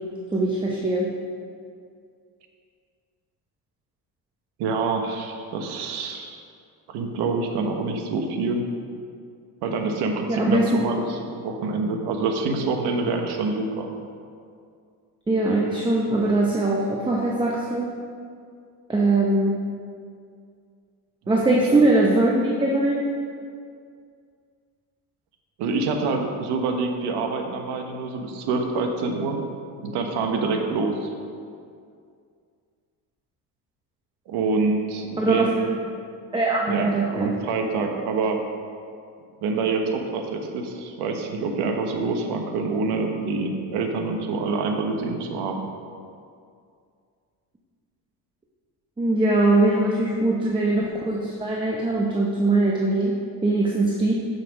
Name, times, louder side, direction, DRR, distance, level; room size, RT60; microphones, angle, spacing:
voice 1, 0.3-1.1 10.3-10.7 15.3-17.9 18.9-19.6 21.3-23.0 35.2-35.5 36.3-37.3 49.0-54.1, right 2 dB, 10° right, -2 dB, 0.8 m, -21 dB
voice 2, 4.6-6.4 6.9-8.6 9.6-13.9 21.3-21.5 25.6-31.1 34.3-35.7 36.7-38.4 39.4-45.6, right 3 dB, 85° right, 3 dB, 1.2 m, -26 dB
9.0 x 6.0 x 5.1 m, 2.3 s
cardioid pair, 135°, 39 cm